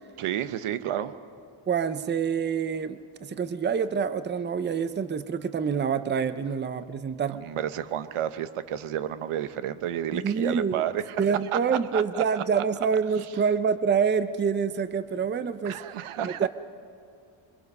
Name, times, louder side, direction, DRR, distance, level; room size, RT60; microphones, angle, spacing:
voice 1, 0.2-1.1 7.3-11.2 11.5-11.6 11.9-12.6 15.6-16.5, right 10 dB, 80° right, 12 dB, 1.1 m, -31 dB
voice 2, 1.7-7.4 10.1-10.8 11.2-15.8 16.2-16.5, right 6 dB, 20° right, 12 dB, 0.5 m, -27 dB
25.5 x 23.5 x 5.4 m, 2.4 s
wide cardioid pair, 165°, 50 cm